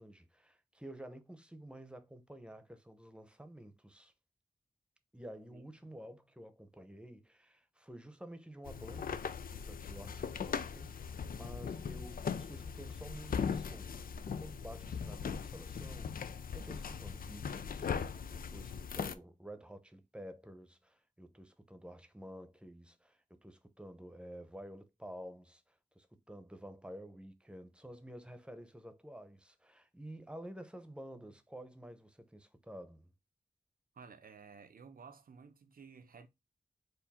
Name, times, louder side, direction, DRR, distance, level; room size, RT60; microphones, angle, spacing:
voice 1, 0.0-4.1 5.1-17.9 18.3-33.1, equal, 5° right, 0.8 m, -51 dB
sound 1, 8.7-19.1, left 6 dB, 90° left, 0.4 m, -39 dB
voice 2, 33.9-36.3, right 5 dB, 85° right, 0.7 m, -54 dB
4.6 x 2.6 x 4.2 m
wide cardioid pair, 75°, 14 cm